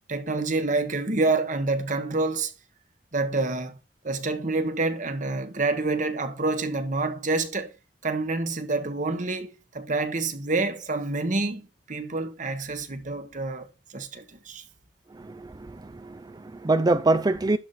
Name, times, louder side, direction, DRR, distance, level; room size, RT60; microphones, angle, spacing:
voice 1, 0.1-2.5 3.1-3.8 4.0-7.7 8.0-13.7 13.9-14.6, right 3 dB, 45° right, 1.3 m, -27 dB
voice 2, 15.1-17.6, right 2 dB, 20° right, 0.4 m, -25 dB
11.5 x 4.1 x 5.7 m
head